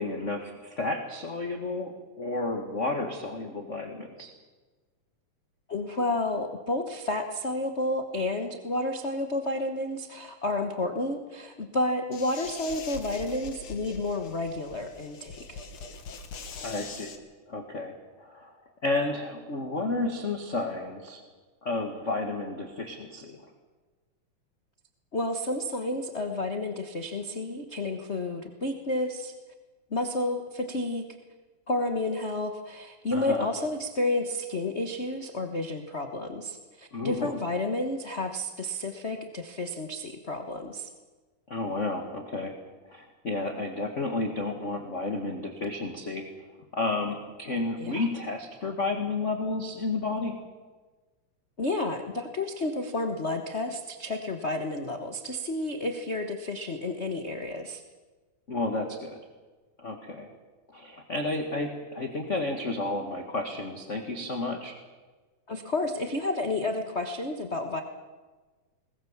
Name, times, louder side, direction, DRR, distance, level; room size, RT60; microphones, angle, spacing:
voice 1, 0.0-1.9 2.2-4.3 16.6-17.1 17.5-17.9 18.2-18.5 18.8-21.2 21.6-23.4 33.1-33.5 36.9-37.3 41.5-42.5 42.9-46.2 46.7-50.3 58.5-59.2 59.8-60.3 60.7-64.7, left 2 dB, 30° left, 4 dB, 1.4 m, -31 dB
voice 2, 5.7-15.6 25.1-29.3 29.9-31.0 31.7-40.9 47.8-48.1 51.6-57.8 65.5-67.8, left 2 dB, 90° left, 5 dB, 0.6 m, -31 dB
sound 1, 12.1-17.2, left 5 dB, 50° left, 2.2 m, -42 dB
21.5 x 20.0 x 7.3 m, 1.3 s
omnidirectional pair, 3.5 m